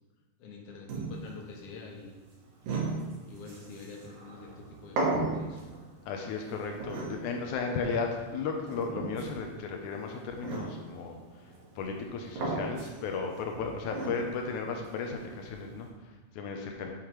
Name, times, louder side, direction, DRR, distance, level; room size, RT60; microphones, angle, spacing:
voice 1, 0.4-2.2 3.3-5.6, left 4 dB, 60° left, 0 dB, 2.0 m, -46 dB
sound 1, 0.9-15.9, right 2 dB, 80° right, 3.0 m, -38 dB
voice 2, 6.1-16.9, left 4 dB, 80° left, 2 dB, 2.2 m, -35 dB
8.4 x 7.7 x 3.2 m, 1.2 s
omnidirectional pair, 3.4 m